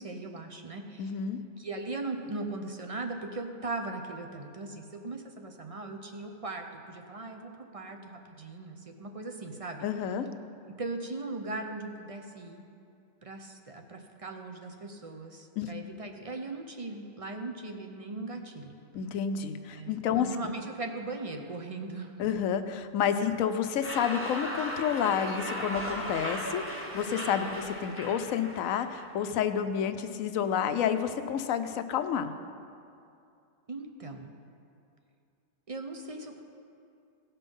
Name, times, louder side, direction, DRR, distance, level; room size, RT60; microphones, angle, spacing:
voice 1, 0.0-1.1 1.6-9.9 10.8-12.6 13.2-18.7 19.7-22.1 33.7-34.3 35.7-36.4, right 2 dB, 40° right, 4 dB, 0.5 m, -39 dB
voice 2, 1.0-1.4 9.8-10.3 15.6-15.7 18.9-20.5 22.2-32.3, left 8 dB, 80° left, 10 dB, 1.0 m, -30 dB
sound 1, 23.8-29.1, equal, 10° right, 1.3 m, -37 dB
17.0 x 5.7 x 5.4 m, 2.5 s
omnidirectional pair, 1.4 m